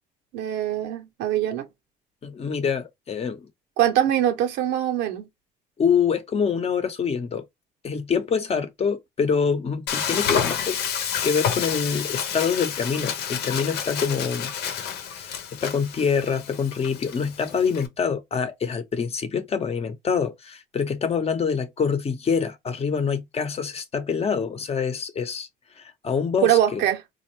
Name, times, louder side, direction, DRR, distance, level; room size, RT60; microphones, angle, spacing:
voice 1, 0.3-1.7 3.8-5.3 26.4-27.0, right 11 dB, 85° right, 1.0 m, -22 dB
voice 2, 2.2-3.5 5.8-7.4 7.8-10.8 11.2-14.5 15.1-25.5 25.8-26.8, left 6 dB, 35° left, 0.9 m, -25 dB
Frying (food), 9.9-17.9, left 8 dB, 75° left, 0.9 m, -29 dB
4.2 x 2.5 x 3.0 m
cardioid pair, 110°, 17 cm